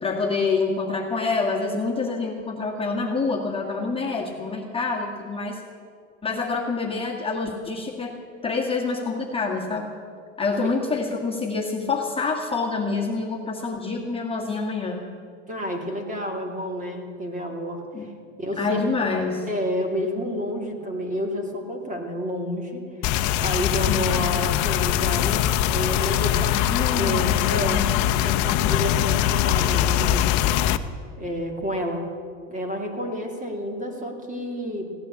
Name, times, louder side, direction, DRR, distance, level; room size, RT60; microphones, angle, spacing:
voice 1, 0.0-5.6 6.2-8.1 8.4-9.9 10.4-15.0 17.9-18.1 18.6-19.5 23.9-24.2 26.7-27.9, left 4 dB, 15° left, -2 dB, 1.8 m, -27 dB
voice 2, 15.5-18.1 18.4-18.9 19.4-27.9 28.2-30.3 31.2-32.1 32.5-34.9, equal, 20° right, 3 dB, 2.4 m, -30 dB
sound 1, 23.0-30.8, left 12 dB, 50° left, 0.8 m, -22 dB
16.5 x 9.7 x 8.5 m, 2.2 s
supercardioid pair, 115°, 37 cm